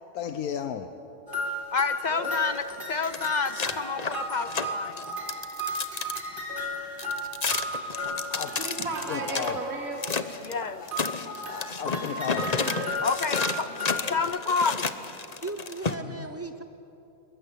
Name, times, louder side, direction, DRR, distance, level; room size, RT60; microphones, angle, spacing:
voice 1, 0.1-0.9 8.0-8.6 9.1-9.6 10.8-10.9 11.2-12.6 16.0-16.3, left 8 dB, 85° left, 8 dB, 1.4 m, -35 dB
sound 1, 1.3-10.0 10.5-14.2, equal, 35° right, 4.1 m, -35 dB
voice 2, 1.7-5.0 10.4-10.8 13.0-14.9, left 5 dB, 50° left, 13 dB, 0.5 m, -29 dB
sound 2, 2.4-6.2 7.0-9.5 10.0-10.5 10.9-15.9, left 4 dB, 30° left, 0.9 m, -31 dB
voice 3, 8.6-10.0 12.5-13.1, right 3 dB, 75° right, -1 dB, 3.0 m, -35 dB
voice 4, 15.4-16.6, right 3 dB, 20° right, 7 dB, 0.4 m, -37 dB
22.5 x 22.0 x 10.0 m, 2.9 s
omnidirectional pair, 1.5 m